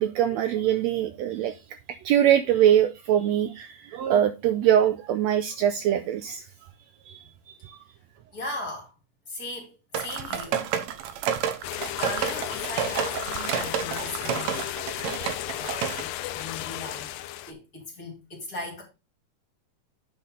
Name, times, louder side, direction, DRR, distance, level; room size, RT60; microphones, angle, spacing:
voice 1, 0.0-1.6 2.0-6.4 7.1-7.2 7.6-7.8, right 10 dB, 85° right, 1.5 m, -23 dB
voice 2, 8.3-8.9 9.3-10.6 11.6-14.7 15.5-17.1 17.5-18.8, left 2 dB, 30° left, 3.1 m, -38 dB
sound 1, 9.9-16.0, right 9 dB, 70° right, 1.9 m, -30 dB
sound 2, 11.6-17.5, left 14 dB, 85° left, 1.5 m, -34 dB
8.7 x 5.4 x 3.8 m
omnidirectional pair, 3.7 m